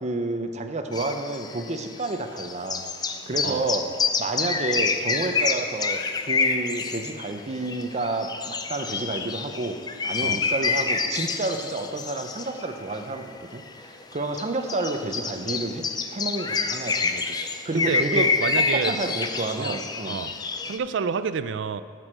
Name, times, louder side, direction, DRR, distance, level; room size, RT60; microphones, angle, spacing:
voice 1, 0.0-2.8 3.3-3.9 4.2-9.8 10.0-15.8 16.1-17.4 17.6-18.3 18.7-20.2, right 2 dB, 40° right, 6 dB, 0.6 m, -30 dB
sound 1, 0.9-20.8, left 4 dB, 20° left, 0.4 m, -28 dB
voice 2, 17.7-19.1 19.6-19.8 20.1-20.3 20.6-21.8, right 6 dB, 75° right, 13 dB, 0.4 m, -29 dB
7.7 x 6.1 x 6.1 m, 2.1 s
head